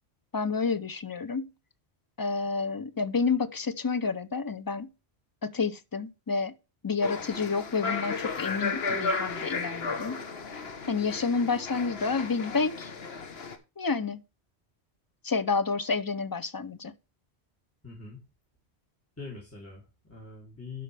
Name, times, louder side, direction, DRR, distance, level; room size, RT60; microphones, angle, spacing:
voice 1, 0.3-1.5 2.2-4.9 5.4-6.5 6.8-10.2 10.9-12.9 13.8-14.2 15.2-16.9, left 4 dB, 30° left, 0.4 m, -29 dB
sound 1, 7.0-13.6, left 4 dB, 65° left, 1.3 m, -34 dB
voice 2, 17.8-18.2 19.2-20.8, left 4 dB, 10° left, 2.9 m, -43 dB
11.5 x 5.4 x 3.3 m
omnidirectional pair, 1.1 m